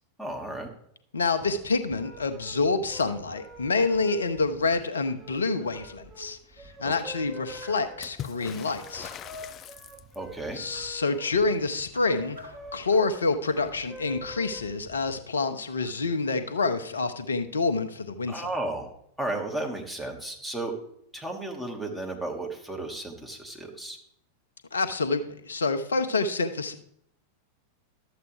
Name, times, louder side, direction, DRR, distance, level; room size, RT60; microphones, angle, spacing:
voice 1, 0.2-0.7 6.8-6.9 10.2-10.6 18.3-18.9 19.2-20.7 21.1-24.0, right 2 dB, 5° right, 0 dB, 1.8 m, -34 dB
voice 2, 1.1-9.1 10.5-12.4 12.7-18.5 24.7-26.7, left 3 dB, 70° left, 10 dB, 0.8 m, -27 dB
sound 1, 1.3-15.1, right 1 dB, 20° right, 2.5 m, -46 dB
sound 2, 7.6-7.9 9.0-9.4 10.7-11.0 11.9-13.2 13.5-13.8, equal, 85° right, 2.2 m, -50 dB
Water / Splash splatter, 8.0-10.4 13.7-13.8 14.0-14.8 15.9-16.0, left 10 dB, 30° left, 0.4 m, -42 dB
12.0 x 7.9 x 3.4 m, 0.70 s
figure-of-eight pair, 90°, 0 cm